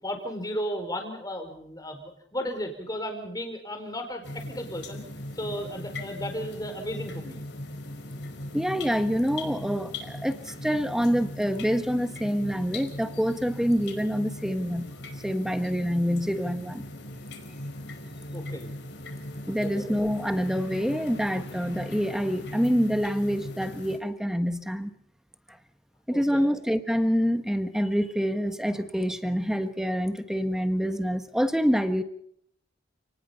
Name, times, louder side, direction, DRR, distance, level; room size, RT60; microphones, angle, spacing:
voice 1, 0.0-5.0 5.4-7.4 18.3-18.7 19.6-20.0 26.1-26.5, equal, 20° left, 5 dB, 4.5 m, -34 dB
sound 1, 4.2-24.0, left 1 dB, 60° left, 4.7 m, -39 dB
voice 2, 8.5-14.9 15.2-16.8 19.5-24.9 26.1-32.0, equal, 5° right, 9 dB, 1.3 m, -26 dB
30.0 x 19.0 x 5.6 m, 0.69 s
head